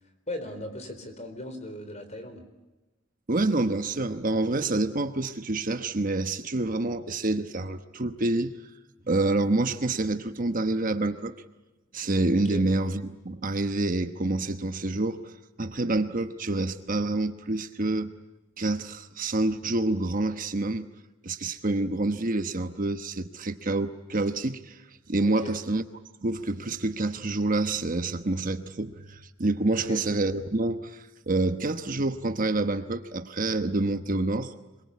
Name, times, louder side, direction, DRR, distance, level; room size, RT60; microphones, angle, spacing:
voice 1, 0.3-2.4 12.4-12.6 25.2-25.5 29.9-30.0, left 1 dB, 35° left, 4.1 m, -38 dB
voice 2, 3.3-8.5 9.1-11.3 11.9-15.3 15.6-18.1 18.6-20.9 21.2-24.8 25.1-25.8 26.2-34.5, right 2 dB, 40° right, 1.1 m, -27 dB
26.0 x 23.5 x 8.4 m
head